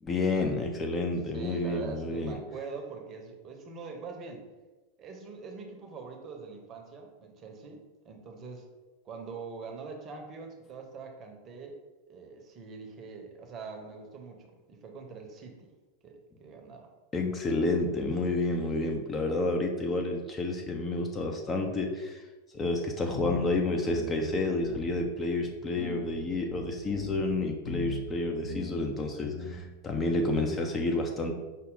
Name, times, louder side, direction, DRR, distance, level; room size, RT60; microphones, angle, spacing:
voice 1, 0.0-2.4 17.1-22.2 22.5-31.3, left 2 dB, 20° left, 2 dB, 0.4 m, -30 dB
voice 2, 1.3-4.4 5.0-8.7 9.0-11.8 12.1-15.7 16.0-16.9, right 4 dB, 30° right, 3 dB, 0.7 m, -43 dB
sound 1, 23.1-23.6 23.9-24.3 24.6-24.9 25.4-25.5 25.8-28.2 28.4-28.9 29.2-29.6 29.9-30.5, left 4 dB, 70° left, 0.8 m, -39 dB
5.2 x 2.1 x 3.8 m, 1.2 s
figure-of-eight pair, 90°, 0 cm